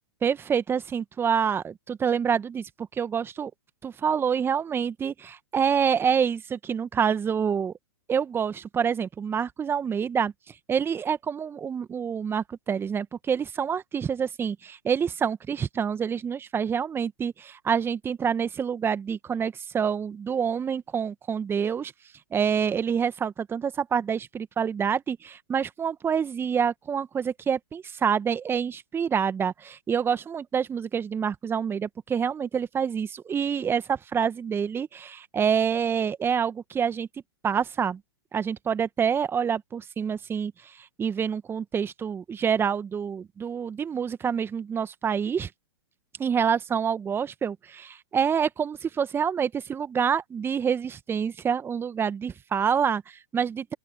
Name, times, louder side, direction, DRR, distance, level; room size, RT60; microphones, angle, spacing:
voice 1, 0.2-3.5 3.8-7.7 8.1-21.9 22.3-37.1 37.4-38.0 38.3-45.5 46.2-53.7, right 7 dB, 15° right, 1.6 m, -27 dB
open air
figure-of-eight pair, 105°, 14 cm